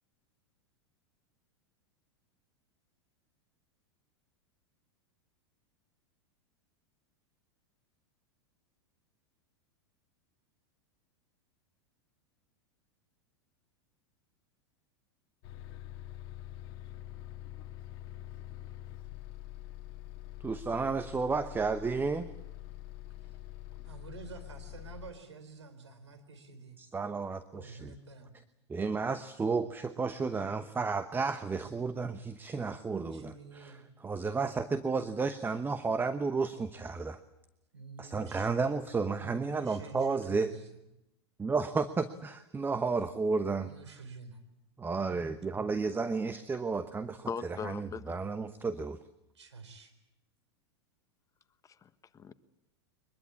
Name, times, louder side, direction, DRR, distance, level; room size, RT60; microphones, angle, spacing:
Bus, 15.4-25.1, left 13 dB, 55° left, 1.7 m, -45 dB
voice 1, 20.4-22.3 26.8-27.9 28.7-33.8 34.0-37.2 38.0-40.5 41.4-43.7 44.8-49.0, right 4 dB, 15° right, 1.0 m, -32 dB
voice 2, 23.9-26.8 27.5-28.3 30.2-30.5 33.1-33.9 37.7-38.5 39.2-40.7 43.6-44.4 45.9-46.1 49.3-49.9, right 4 dB, 85° right, 4.0 m, -49 dB
voice 3, 47.3-48.2 51.8-52.3, left 6 dB, 20° left, 1.3 m, -39 dB
23.0 x 21.5 x 8.6 m
hypercardioid pair, 100°, 14 cm